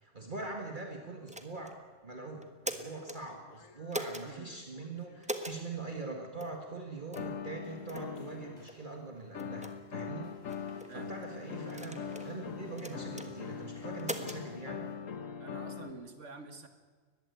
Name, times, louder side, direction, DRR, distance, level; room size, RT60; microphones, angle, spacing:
voice 1, 0.0-1.8 2.0-10.3 10.5-14.8, right 3 dB, 40° right, 2 dB, 2.0 m, -43 dB
sound 1, 1.3-1.8 2.4-3.2 3.9-4.3 5.2-5.6 6.4-6.5 7.1-7.3 7.9-8.1 8.7-8.8 9.4-9.7 10.5-10.9 11.7-12.3 12.8-13.3 14.0-14.4, right 1 dB, 5° right, 1.3 m, -40 dB
sound 2, 1.7-1.8 2.8-3.9 4.3-5.3 7.2-8.7 9.3-15.9, left 6 dB, 85° left, 1.5 m, -42 dB
voice 2, 4.2-4.6 10.9-11.2 15.4-16.7, right 3 dB, 65° right, 7 dB, 2.2 m, -48 dB
sound 3, 7.2-14.9, left 1 dB, 20° left, 6.9 m, -65 dB
20.5 x 15.5 x 9.5 m, 1.5 s
omnidirectional pair, 1.3 m